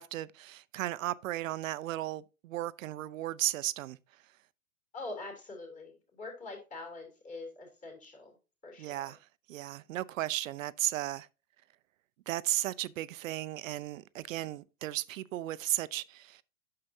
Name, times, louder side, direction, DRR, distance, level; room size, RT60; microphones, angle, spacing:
voice 1, 0.0-4.0 8.8-9.2 9.5-11.3 12.3-16.4, right 15 dB, 65° right, 0.5 m, -35 dB
voice 2, 4.9-8.3 8.6-9.1, left 2 dB, 15° left, 3.1 m, -44 dB
8.7 x 6.7 x 2.7 m
hypercardioid pair, 140°, 43 cm